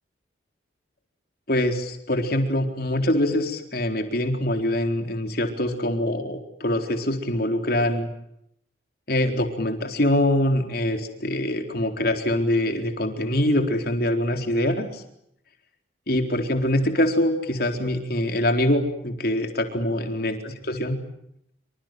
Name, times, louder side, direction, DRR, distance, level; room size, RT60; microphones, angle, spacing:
voice 1, 1.5-8.1 9.1-15.0 16.1-21.0, left 1 dB, 50° left, 5 dB, 4.1 m, -24 dB
27.0 x 26.0 x 7.7 m, 0.76 s
head